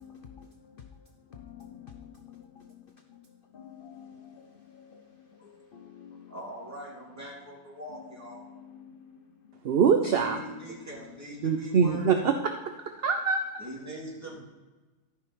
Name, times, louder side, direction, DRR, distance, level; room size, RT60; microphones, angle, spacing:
voice 1, 0.0-6.3 8.3-9.6, left 8 dB, 55° left, 5 dB, 0.6 m, -50 dB
voice 2, 6.3-8.4 10.0-12.2 13.6-14.4, right 1 dB, 10° right, -5 dB, 3.2 m, -42 dB
voice 3, 9.6-10.4 11.4-12.5 13.0-13.4, right 6 dB, 55° right, 6 dB, 0.7 m, -23 dB
13.0 x 5.7 x 4.6 m, 1.2 s
omnidirectional pair, 1.6 m